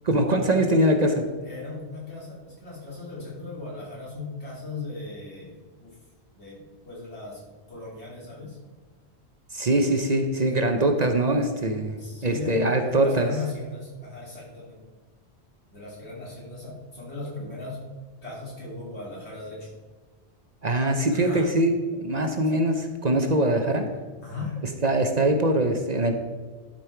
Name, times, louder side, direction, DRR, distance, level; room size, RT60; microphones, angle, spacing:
voice 1, 0.1-1.2 9.5-13.3 20.6-23.9 24.8-26.1, right 1 dB, 45° right, 5 dB, 0.8 m, -23 dB
voice 2, 1.4-6.0 6.4-8.6 10.4-10.6 12.0-12.7 12.9-14.8 15.7-17.8 18.2-19.8 21.1-21.5 24.2-24.6, left 3 dB, 75° left, -5 dB, 3.2 m, -37 dB
11.5 x 5.4 x 4.5 m, 1.4 s
omnidirectional pair, 1.1 m